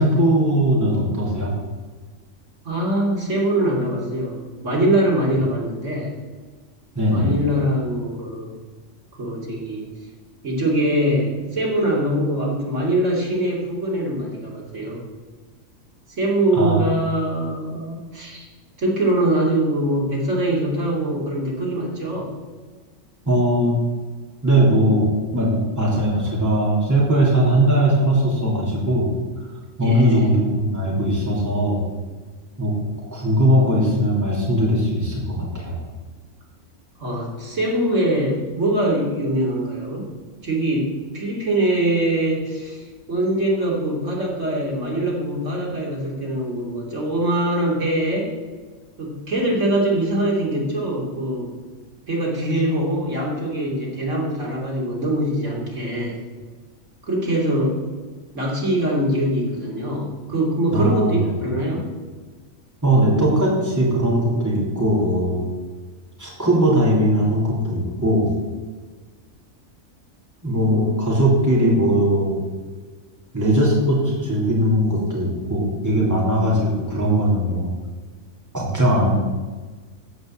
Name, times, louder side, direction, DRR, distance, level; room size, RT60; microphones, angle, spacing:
voice 1, 0.0-1.5 6.9-7.3 16.5-16.8 23.3-23.7 24.4-29.1 29.8-31.8 32.6-32.7 33.1-35.8 60.7-61.3 62.8-65.5 66.2-68.3 70.4-72.4 73.3-77.7 78.5-79.1, right 1 dB, 15° right, -5 dB, 3.3 m, -19 dB
voice 2, 2.6-6.1 7.1-8.6 9.2-9.8 10.4-15.0 16.2-18.4 18.8-22.3 29.8-30.3 37.0-40.1 40.4-48.3 49.0-51.5 52.1-56.2 57.1-57.8 58.3-61.9 70.4-71.0, right 1 dB, 65° right, -3 dB, 3.3 m, -23 dB
15.0 x 5.3 x 7.7 m, 1.4 s
omnidirectional pair, 1.4 m